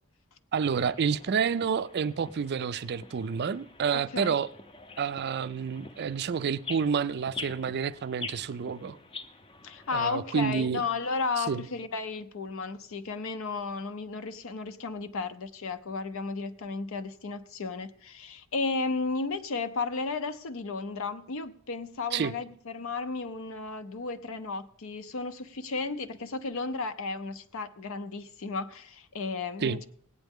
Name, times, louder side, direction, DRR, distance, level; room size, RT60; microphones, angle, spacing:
voice 1, 0.5-4.5 5.0-9.0 9.9-10.8 11.4-11.7 22.1-22.3 29.6-29.8, right 6 dB, 50° right, 0.4 m, -29 dB
sound 1, 0.6-9.9, left 4 dB, 25° left, 0.6 m, -45 dB
voice 2, 3.9-4.4 9.6-29.9, left 4 dB, 65° left, 0.6 m, -34 dB
17.5 x 9.1 x 3.6 m
head